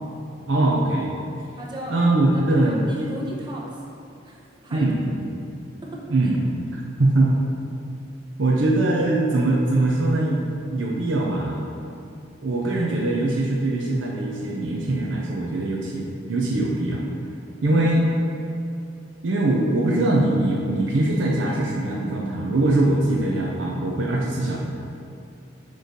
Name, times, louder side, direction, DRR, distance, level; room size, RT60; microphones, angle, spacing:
voice 1, 0.5-1.1 1.9-2.8 4.7-5.1 6.1-7.3 8.4-11.7 12.4-17.0 17.6-18.0 19.2-24.6, right 2 dB, 75° right, -2 dB, 0.6 m, -22 dB
voice 2, 1.5-2.0 2.3-3.8 4.2-4.9 5.8-6.3 17.8-17.9, right 1 dB, 25° right, -3 dB, 0.9 m, -36 dB
6.4 x 3.2 x 5.1 m, 2.5 s
head